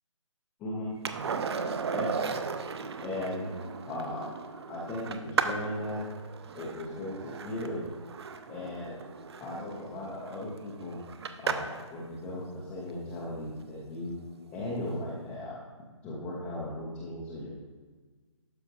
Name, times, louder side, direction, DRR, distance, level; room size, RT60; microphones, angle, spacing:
voice 1, 0.6-0.9 1.9-2.5 3.0-3.5 3.9-4.4 4.7-6.0 6.5-7.8 8.5-9.0 9.4-11.0 11.4-14.1 14.5-15.6 16.0-17.6, left 1 dB, 5° left, -6 dB, 0.3 m, -37 dB
Skateboard, 1.0-11.9 14.5-14.6, right 5 dB, 55° right, 0.5 m, -36 dB
12.0 x 5.1 x 2.6 m, 1.4 s
hypercardioid pair, 155°, 17 cm